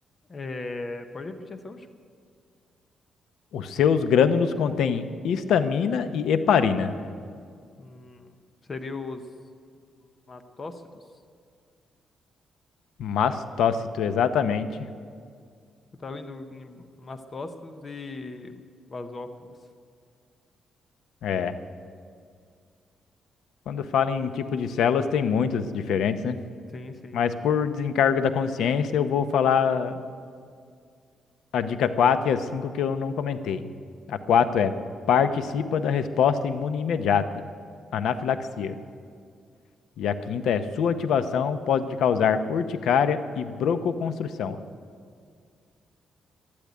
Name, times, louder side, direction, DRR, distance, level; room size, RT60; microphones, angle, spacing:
voice 1, 0.3-2.0 7.8-8.4 8.7-9.3 10.3-11.0 16.0-19.5 26.7-27.2, left 3 dB, 25° left, 8 dB, 0.7 m, -38 dB
voice 2, 3.5-6.9 13.0-14.7 21.2-21.5 23.7-26.4 27.1-30.0 31.5-33.7 34.1-34.7 35.1-37.4 37.9-38.8 40.0-44.6, left 7 dB, 80° left, 11 dB, 0.8 m, -24 dB
12.0 x 12.0 x 9.4 m, 2.2 s
cardioid pair, 175°, 0 cm